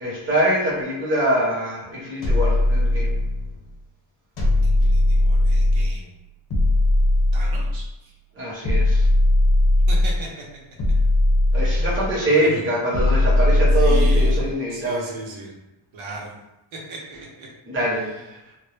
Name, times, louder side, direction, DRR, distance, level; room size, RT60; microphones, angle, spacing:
voice 1, 0.0-3.1 8.4-9.1 11.5-15.1 17.7-18.1, right 1 dB, 25° right, -6 dB, 0.6 m, -23 dB
sound 1, 2.2-3.5 4.4-6.0 6.5-7.9 8.6-10.3 10.8-12.2 12.9-14.5, left 1 dB, 50° left, 0.8 m, -18 dB
voice 2, 4.6-6.1 7.3-8.1 9.9-10.3 11.5-12.7 13.7-14.4 14.7-15.5 15.9-16.3 16.7-17.5 18.0-18.5, right 2 dB, 70° right, -2 dB, 0.6 m, -37 dB
2.1 x 2.0 x 3.0 m, 0.96 s
wide cardioid pair, 180°, 50 cm